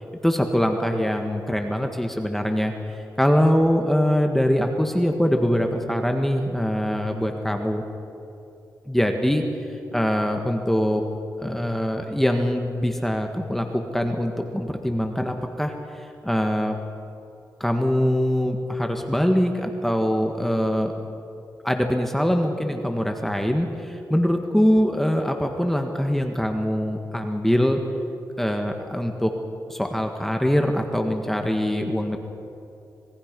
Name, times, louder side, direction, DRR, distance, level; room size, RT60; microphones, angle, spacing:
voice 1, 0.2-7.8 8.9-9.4 9.7-11.0 11.4-16.8 17.6-20.9 21.6-27.8 28.4-29.3 29.7-32.2, equal, 5° left, 4 dB, 1.7 m, -23 dB
26.0 x 21.5 x 5.4 m, 2.8 s
cardioid pair, 95°, 7 cm